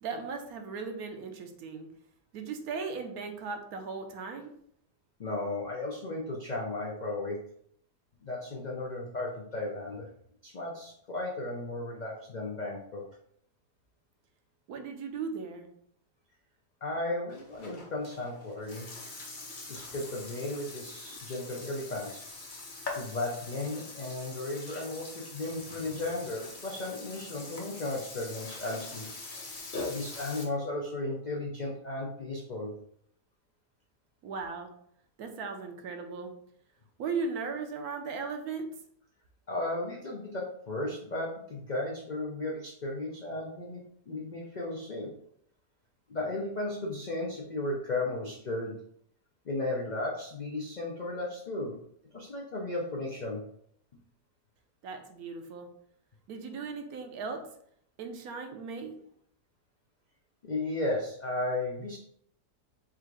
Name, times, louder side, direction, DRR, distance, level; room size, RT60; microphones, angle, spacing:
voice 1, 0.0-1.9 2.3-4.5 14.7-15.7 34.2-34.7 35.2-36.3 37.0-38.7 54.8-55.7 56.3-57.4 58.0-59.0, right 4 dB, 70° right, 5 dB, 1.1 m, -37 dB
voice 2, 5.2-7.4 8.2-10.1 10.4-13.0 16.8-18.9 19.7-22.3 23.0-29.1 29.9-32.7 39.5-45.1 46.1-48.8 49.4-51.8 52.1-53.4 60.4-62.0, left 2 dB, 75° left, -2 dB, 0.4 m, -35 dB
Burping eructation, 17.3-30.4, left 3 dB, 40° left, 0.8 m, -43 dB
3.6 x 2.5 x 4.5 m, 0.67 s
omnidirectional pair, 1.7 m